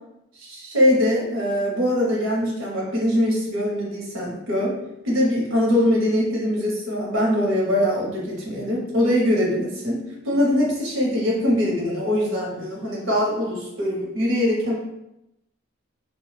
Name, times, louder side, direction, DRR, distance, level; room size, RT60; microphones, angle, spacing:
voice 1, 0.5-4.8 5.0-14.8, left 1 dB, 85° right, -3 dB, 1.1 m, -22 dB
2.9 x 2.3 x 3.3 m, 0.86 s
head